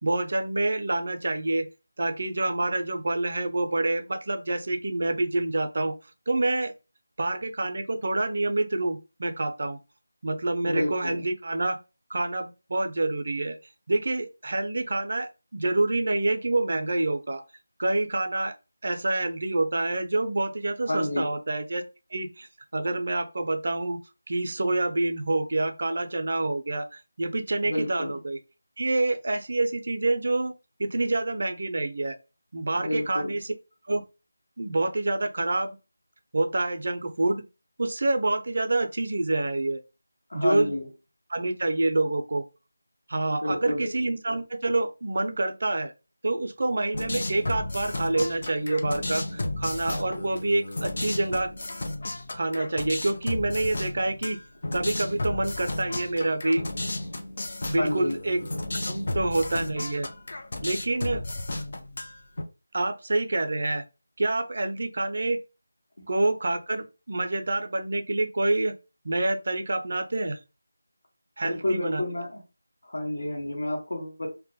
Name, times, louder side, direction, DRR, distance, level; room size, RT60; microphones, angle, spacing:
voice 1, 0.0-1.7 2.0-5.9 6.3-6.7 7.2-9.8 10.2-11.8 12.1-13.6 13.9-17.4 17.8-18.5 18.8-21.8 22.1-24.0 24.3-28.4 28.8-30.5 30.8-32.2 32.5-33.5 33.9-34.0 34.6-35.8 36.3-37.4 37.8-39.8 40.3-40.7 41.3-42.4 43.1-45.9 46.2-51.5 52.3-54.4 54.7-56.6 57.7-58.5 58.8-60.1 60.6-61.2 62.7-63.8 64.2-65.4 66.1-68.7 69.0-70.4 71.4-72.0, right 2 dB, 55° right, 0.4 m, -27 dB
voice 2, 10.6-11.2 20.9-21.3 27.6-28.2 32.7-33.4 40.3-40.9 43.3-43.9 57.8-58.2 66.0-66.1 71.4-72.4 72.8-74.3, left 1 dB, 80° left, 0.9 m, -29 dB
sound 1, 46.9-62.4, left 2 dB, 55° left, 0.5 m, -33 dB
2.2 x 2.1 x 2.7 m
figure-of-eight pair, 170°, 0 cm